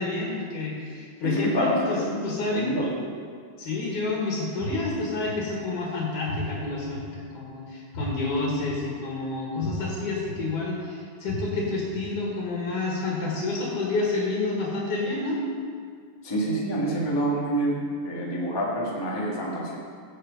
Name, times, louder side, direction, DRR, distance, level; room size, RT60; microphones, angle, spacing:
voice 1, 0.0-2.7 3.6-15.4, left 3 dB, 85° left, -3 dB, 3.3 m, -29 dB
voice 2, 1.2-2.2 2.5-3.1 16.2-19.8, right 1 dB, 10° left, -4 dB, 1.1 m, -27 dB
sound 1, 4.6-4.7 5.2-5.3 6.3-6.4 6.9-7.0 7.9-8.0 8.6-8.7 9.6-9.7 10.2-10.3 11.3-11.4 11.9-12.0, left 4 dB, 55° left, 2.7 m, -36 dB
16.5 x 6.4 x 5.2 m, 2.1 s
omnidirectional pair, 3.5 m